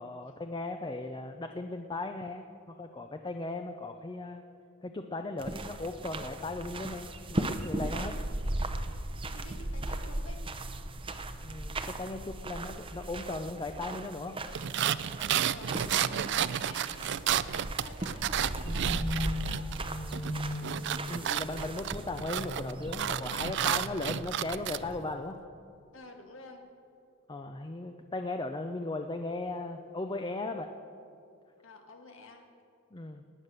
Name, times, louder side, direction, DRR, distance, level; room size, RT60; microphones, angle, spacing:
voice 1, 0.0-4.4 4.8-8.2 11.4-14.4 21.1-25.4 27.3-30.7 32.9-33.2, left 2 dB, 20° left, 6 dB, 0.6 m, -37 dB
sound 1, 5.4-25.0, right 1 dB, 25° right, 0.7 m, -38 dB
voice 2, 9.3-10.5 15.5-17.2 17.5-19.7 25.9-26.6 31.6-32.5, left 2 dB, 70° left, 4 dB, 1.8 m, -50 dB
sound 2, 14.5-19.8 20.1-24.8, right 10 dB, 60° right, 0.4 m, -31 dB
sound 3, 18.6-24.9, left 2 dB, 45° left, 1.3 m, -40 dB
18.0 x 9.6 x 6.7 m, 2.5 s
head